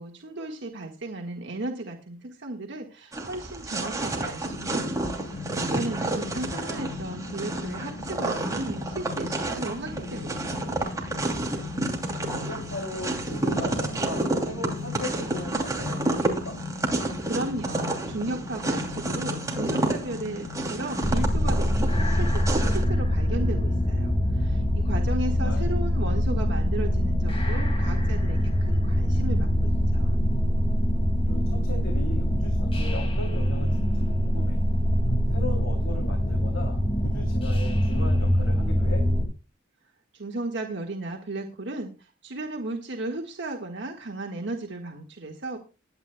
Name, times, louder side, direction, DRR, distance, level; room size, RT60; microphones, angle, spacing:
voice 1, 0.0-5.0 5.3-10.8 17.0-30.2 40.1-45.6, right 2 dB, 65° right, 1 dB, 1.6 m, -35 dB
sound 1, 3.1-22.8, right 2 dB, 15° right, 2.8 m, -30 dB
sound 2, 4.4-21.4, left 3 dB, 70° left, 1.1 m, -38 dB
voice 2, 6.5-6.9 12.3-16.6 25.4-25.7 31.2-34.6 35.3-39.0, left 1 dB, 90° left, 1 dB, 3.0 m, -38 dB
sound 3, 21.0-39.3, equal, 30° left, 2.3 m, -24 dB
21.0 x 9.4 x 2.3 m, 0.32 s
head